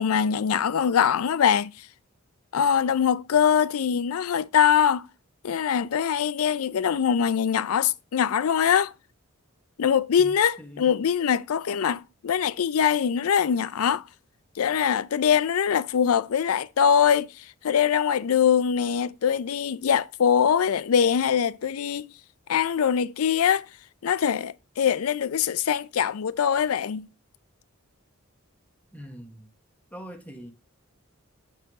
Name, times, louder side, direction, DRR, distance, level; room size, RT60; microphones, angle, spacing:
voice 1, 0.0-1.9 2.5-5.1 5.4-8.9 9.8-14.0 14.6-22.1 22.5-23.7 24.0-27.1, left 8 dB, 90° left, 0.4 m, -23 dB
voice 2, 10.6-11.0 28.9-29.5 29.9-30.5, equal, 5° left, 1.2 m, -42 dB
6.7 x 4.6 x 4.7 m
head